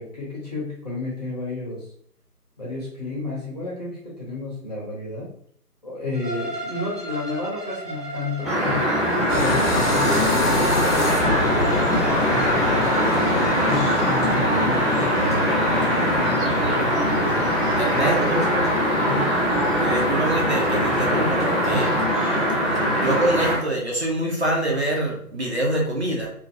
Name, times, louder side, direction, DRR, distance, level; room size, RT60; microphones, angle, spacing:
voice 1, 0.0-1.8 2.6-5.3 5.8-8.9 9.4-11.8 12.3-12.9 13.4-17.5 17.9-18.7 19.0-19.3, left 2 dB, 25° left, -6 dB, 0.9 m, -31 dB
Bowed string instrument, 6.1-13.3, right 1 dB, 90° right, 0.9 m, -35 dB
sound 1, 8.4-23.6, equal, ahead, 0.4 m, -22 dB
sound 2, 9.3-22.0, left 2 dB, 70° left, 0.8 m, -27 dB
voice 2, 17.8-18.4 19.8-21.9 22.8-26.3, right 1 dB, 45° right, -2 dB, 0.6 m, -25 dB
2.8 x 2.6 x 2.6 m, 0.63 s
figure-of-eight pair, 155°, 47 cm